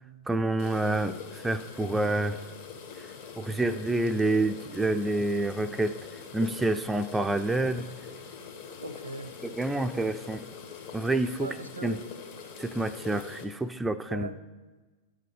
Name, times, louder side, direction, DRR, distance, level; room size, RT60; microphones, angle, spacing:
voice 1, 0.3-2.4 3.4-6.0 6.3-7.9 9.4-10.5 10.9-11.5 11.8-12.0 12.6-14.3, right 2 dB, 10° right, 8 dB, 0.4 m, -28 dB
sound 1, 0.6-13.4, left 6 dB, 55° left, 1.3 m, -44 dB
voice 2, 8.8-9.4 11.4-12.0 14.1-14.4, right 1 dB, 85° right, 11 dB, 0.8 m, -39 dB
11.5 x 5.0 x 4.8 m, 1.2 s
figure-of-eight pair, 95°, 0 cm